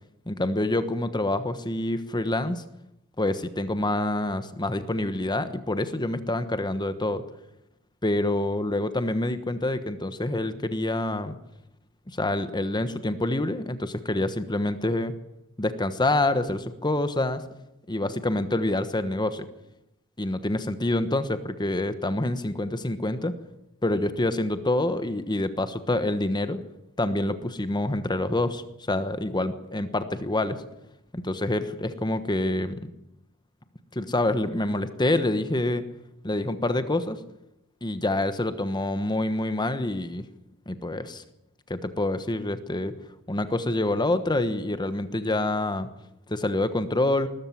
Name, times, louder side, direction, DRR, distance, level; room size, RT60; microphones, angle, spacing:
voice 1, 0.3-2.6 3.2-7.2 8.0-11.4 12.1-15.1 15.6-17.4 17.9-19.5 20.2-23.3 23.8-26.6 27.0-30.6 31.1-32.9 33.9-35.8 36.2-37.2 37.8-40.3 40.7-41.2 41.7-42.9 43.3-45.9 46.3-47.3, left 2 dB, 20° left, 11 dB, 1.2 m, -27 dB
20.5 x 13.5 x 9.7 m, 0.85 s
head